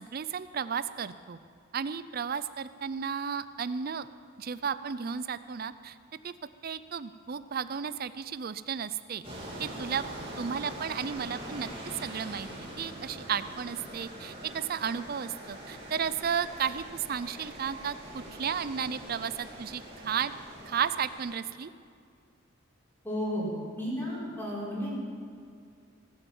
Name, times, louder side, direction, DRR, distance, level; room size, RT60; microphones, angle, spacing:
voice 1, 0.0-1.4 1.7-4.1 4.4-6.0 6.2-6.3 6.6-9.2 9.6-10.0 10.4-12.5 12.8-20.3 20.7-21.7, right 7 dB, 45° right, 14 dB, 0.4 m, -33 dB
sound 1, 9.2-21.4, right 1 dB, 25° right, 3.0 m, -43 dB
voice 2, 23.0-23.5 23.8-24.9, equal, 10° left, -7 dB, 4.4 m, -33 dB
19.5 x 8.4 x 7.2 m, 2.3 s
head